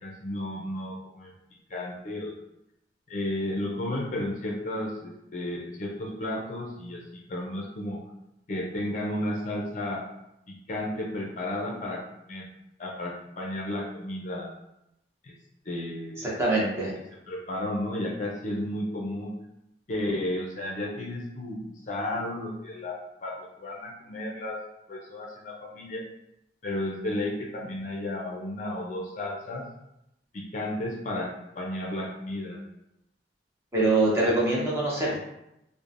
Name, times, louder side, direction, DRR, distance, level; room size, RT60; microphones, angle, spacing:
voice 1, 0.0-1.3 1.7-2.3 3.1-8.0 8.5-10.0 10.5-12.0 12.3-12.5 12.8-14.5 15.2-15.3 15.7-16.3 17.3-19.3 19.9-24.6 24.9-26.0 26.6-29.6 30.3-32.6, left 1 dB, 45° left, -2 dB, 0.5 m, -33 dB
voice 2, 16.2-16.9 33.7-35.2, right 2 dB, 15° right, -5 dB, 0.7 m, -24 dB
3.0 x 2.0 x 2.5 m, 0.85 s
head